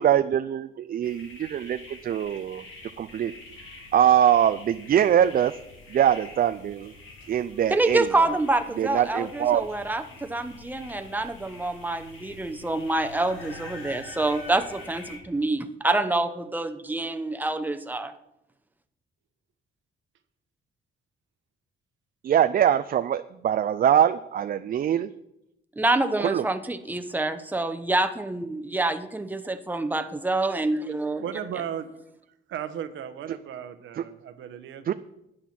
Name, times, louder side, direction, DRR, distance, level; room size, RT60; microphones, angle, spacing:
voice 1, 0.0-2.6 3.0-3.3 3.9-5.5 5.9-6.9 7.3-8.0 8.8-9.7 22.2-25.1 26.2-26.4 34.9-35.0, right 10 dB, 45° right, 12 dB, 0.4 m, -23 dB
sound 1, 1.0-15.2, left 2 dB, 75° left, 3.0 m, -46 dB
voice 2, 7.7-18.1 25.8-31.2, right 2 dB, 10° right, 8 dB, 0.9 m, -27 dB
voice 3, 31.1-31.9 32.5-34.8, right 9 dB, 80° right, 10 dB, 1.0 m, -35 dB
12.0 x 8.9 x 4.4 m, 0.86 s
cardioid pair, 90°, 20 cm